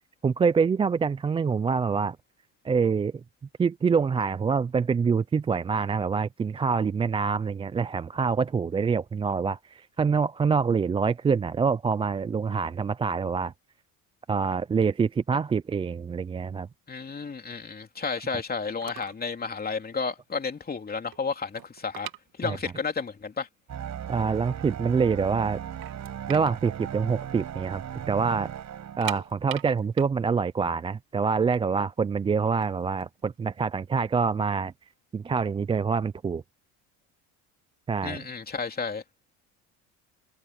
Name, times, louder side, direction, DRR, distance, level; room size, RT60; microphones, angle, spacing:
voice 1, 0.2-2.2 2.6-3.1 3.6-13.5 14.3-16.7 18.3-18.4 22.4-22.6 24.1-25.6 26.3-28.5 29.0-34.7 35.1-36.4 37.9-38.2, right 5 dB, 15° right, 0.3 m, -26 dB
voice 2, 16.9-22.1 22.4-23.5 38.0-39.0, left 5 dB, 25° left, 3.0 m, -32 dB
sound 1, 18.8-19.3 19.5-19.8 20.3-20.4 20.7-22.9 23.2-23.3 23.9-24.0 24.4-25.1 25.4-25.5 25.8-27.8 28.1-28.2 28.8-31.7 32.4-34.2, right 15 dB, 65° right, 2.6 m, -41 dB
sound 2, 23.7-29.5, right 9 dB, 45° right, 7.9 m, -37 dB
supercardioid pair, 105°, 39 cm